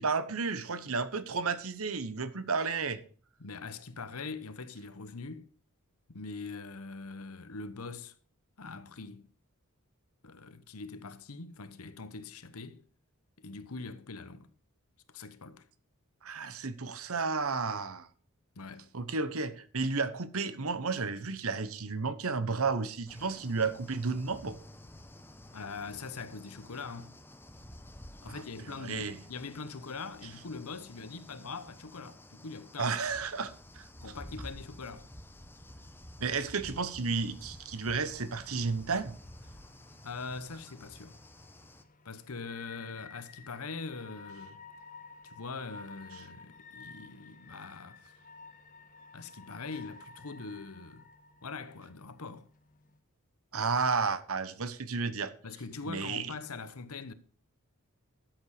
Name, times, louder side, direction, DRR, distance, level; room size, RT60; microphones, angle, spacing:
voice 1, 0.0-3.0 16.2-18.1 18.9-24.6 28.3-28.4 28.8-29.2 32.8-33.9 36.2-39.1 53.5-55.3 55.9-56.3, right 4 dB, 70° right, 1.1 m, -32 dB
voice 2, 3.4-5.5 6.1-8.1 8.6-9.3 10.2-12.8 13.4-14.5 15.1-15.7 18.5-18.9 25.5-27.2 28.2-33.0 34.0-35.1 40.0-41.2 42.0-44.6 45.2-48.1 49.1-51.1 51.4-52.5 55.4-57.1, left 4 dB, 75° left, 1.1 m, -42 dB
sound 1, 23.1-41.8, left 1 dB, 10° left, 0.9 m, -51 dB
sound 2, 37.1-53.0, left 4 dB, 35° left, 1.3 m, -54 dB
13.0 x 8.0 x 4.9 m
head